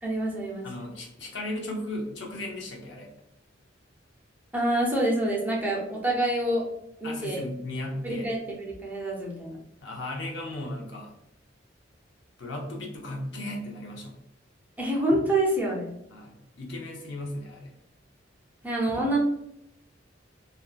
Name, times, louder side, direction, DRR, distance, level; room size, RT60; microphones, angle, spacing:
voice 1, 0.0-0.7 4.5-6.7 7.0-7.4 8.0-9.6 14.8-15.9 18.6-19.2, right 1 dB, 10° right, -2 dB, 0.5 m, -27 dB
voice 2, 0.6-3.1 7.0-8.3 9.8-11.1 12.4-14.1 16.1-17.7, left 1 dB, 65° left, -1 dB, 0.6 m, -36 dB
2.6 x 2.2 x 2.3 m, 0.78 s
head